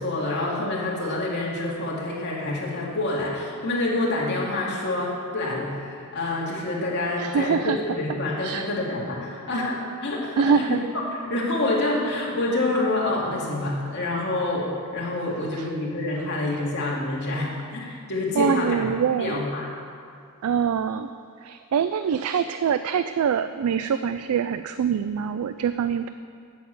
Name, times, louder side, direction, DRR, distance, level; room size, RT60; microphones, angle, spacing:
voice 1, 0.0-10.7 11.1-18.9 19.2-19.7, left 2 dB, 55° left, -4 dB, 2.5 m, -27 dB
voice 2, 7.2-7.8 8.4-8.6 10.4-10.8 18.4-19.4 20.4-21.1 21.4-26.1, right 7 dB, 75° right, 11 dB, 0.3 m, -24 dB
8.2 x 7.3 x 8.5 m, 2.3 s
head